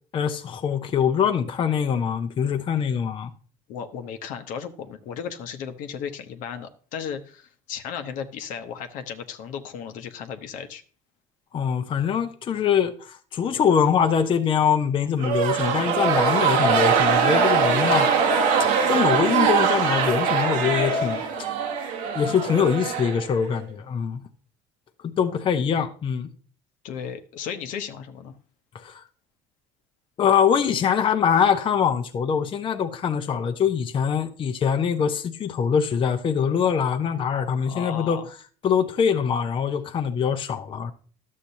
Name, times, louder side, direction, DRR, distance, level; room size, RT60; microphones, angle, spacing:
voice 1, 0.1-3.3 11.5-21.2 22.1-24.2 25.2-26.3 28.7-29.0 30.2-38.2 38.6-40.9, left 7 dB, 40° left, 0.7 m, -23 dB
voice 2, 3.7-10.8 26.8-28.4 37.6-38.3, left 7 dB, 75° left, 0.9 m, -35 dB
sound 1, 15.2-23.6, right 6 dB, 75° right, 1.2 m, -22 dB
11.5 x 7.4 x 2.7 m
supercardioid pair, 100°, 14 cm